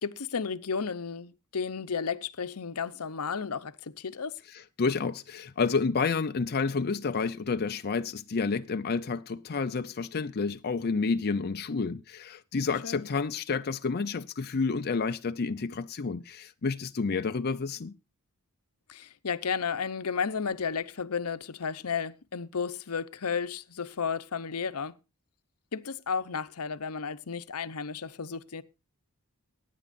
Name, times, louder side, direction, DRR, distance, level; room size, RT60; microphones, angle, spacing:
voice 1, 0.0-4.4 12.8-13.1 18.9-24.9 25.7-28.6, left 6 dB, 75° left, 0.8 m, -33 dB
voice 2, 4.8-17.9, left 4 dB, 45° left, 0.5 m, -30 dB
23.5 x 10.0 x 2.6 m
head